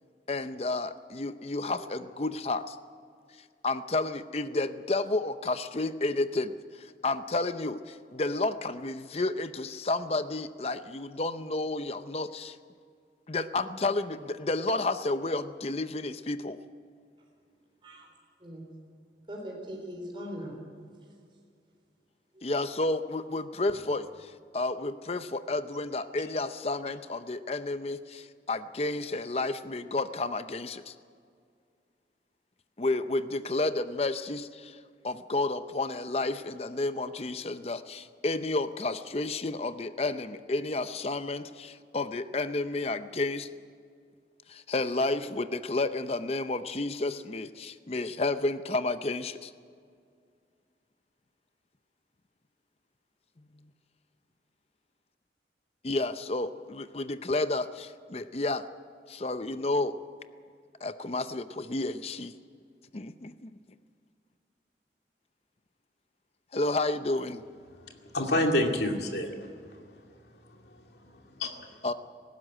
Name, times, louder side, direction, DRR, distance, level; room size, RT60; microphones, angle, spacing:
voice 1, 0.3-2.8 3.6-12.6 13.3-16.6 22.4-30.9 32.8-34.8 35.0-43.5 44.5-49.5 53.6-53.7 55.8-58.7 59.1-60.0 60.8-62.3 62.9-63.5 66.5-67.4 71.8-71.9, left 2 dB, 35° left, 11 dB, 0.6 m, -31 dB
voice 2, 18.4-18.7 19.3-20.7 22.4-22.5, equal, 30° right, -1 dB, 4.0 m, -41 dB
voice 3, 67.8-69.5 71.0-71.5, left 1 dB, 70° left, 2 dB, 2.4 m, -28 dB
18.5 x 16.0 x 8.9 m, 2.2 s
head